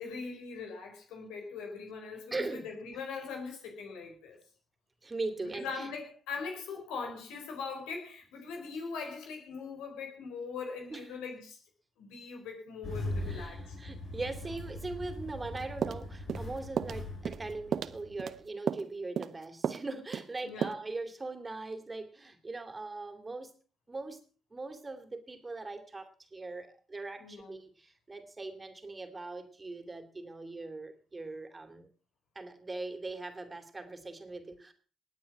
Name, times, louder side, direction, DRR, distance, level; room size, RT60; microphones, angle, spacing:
voice 1, 0.0-4.4 5.5-11.6 12.0-13.8 20.4-20.8 27.2-27.5, left 5 dB, 75° left, 3 dB, 4.4 m, -41 dB
voice 2, 2.3-3.0 5.0-5.9 10.9-11.1 13.2-23.5 23.9-24.2 24.5-31.9 32.3-34.7, right 3 dB, 25° right, 7 dB, 2.9 m, -41 dB
Engine starting, 12.8-18.4, left 1 dB, 50° left, 6.3 m, -40 dB
sound 1, 15.8-16.5 16.8-17.0 17.2-17.5 17.7-18.3 18.7-18.9 19.2-19.4 19.6-19.9 20.1-20.3 20.6-20.7, right 8 dB, 55° right, 0.8 m, -33 dB
19.5 x 8.8 x 6.0 m, 0.39 s
hypercardioid pair, 50°, 0 cm